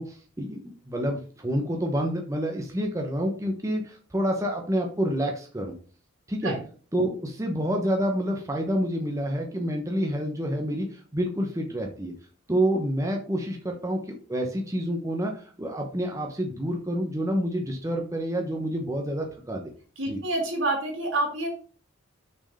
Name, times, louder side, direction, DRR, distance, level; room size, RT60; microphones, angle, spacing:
voice 1, 0.0-5.7 6.3-6.5 6.9-12.1 12.5-14.0 14.3-19.6 20.0-20.2, equal, 15° right, 2 dB, 0.9 m, -28 dB
voice 2, 20.0-21.5, right 2 dB, 65° right, 1 dB, 2.9 m, -28 dB
6.1 x 4.6 x 5.4 m, 0.40 s
head